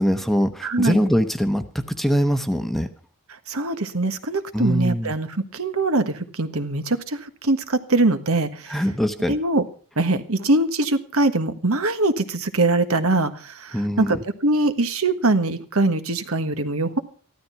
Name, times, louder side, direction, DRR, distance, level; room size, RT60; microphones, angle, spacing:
voice 1, 0.0-2.9 4.5-5.1 8.7-9.3 13.7-14.2, equal, ahead, 9 dB, 1.0 m, -22 dB
voice 2, 0.6-1.0 3.5-8.8 9.3-9.6 10.0-17.0, right 2 dB, 70° right, 9 dB, 1.5 m, -22 dB
15.0 x 13.0 x 5.8 m, 0.41 s
head